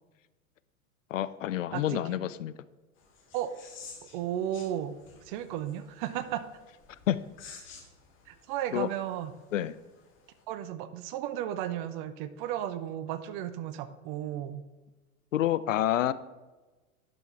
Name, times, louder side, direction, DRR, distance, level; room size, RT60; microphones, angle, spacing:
voice 1, 1.1-2.5 7.1-7.2 8.7-8.9 9.5-9.8 15.3-16.1, left 12 dB, 60° left, 16 dB, 0.5 m, -28 dB
voice 2, 1.7-2.2 3.3-3.5 4.1-5.0 5.2-6.5 8.3-9.3 10.5-14.6, right 11 dB, 35° right, 12 dB, 0.6 m, -34 dB
sound 1, 3.0-10.4, left 5 dB, 30° left, 2.1 m, -53 dB
10.5 x 5.6 x 4.4 m, 1.2 s
figure-of-eight pair, 90°, 43 cm